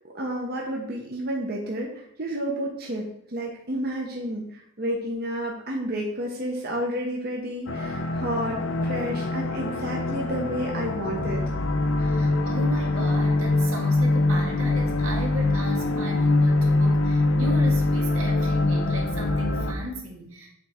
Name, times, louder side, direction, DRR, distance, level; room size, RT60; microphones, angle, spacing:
voice 1, 0.1-4.4 4.8-11.4, equal, 50° right, -1 dB, 1.0 m, -30 dB
sound 1, 7.7-19.7, left 2 dB, 70° left, 0.7 m, -23 dB
voice 2, 12.0-20.5, equal, 85° right, -1 dB, 1.7 m, -36 dB
7.7 x 3.5 x 4.3 m, 0.73 s
head